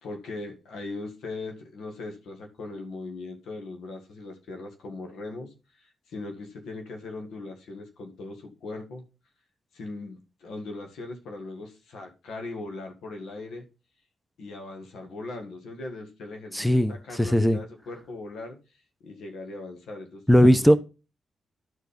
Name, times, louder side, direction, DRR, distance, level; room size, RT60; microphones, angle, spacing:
voice 1, 0.0-5.5 5.8-9.0 9.7-13.6 14.4-18.6 19.0-20.7, left 2 dB, 80° left, 1.8 m, -39 dB
voice 2, 16.5-16.9 17.2-17.6 20.3-20.8, equal, ahead, 0.8 m, -18 dB
12.0 x 4.5 x 5.2 m
supercardioid pair, 60°, 0 cm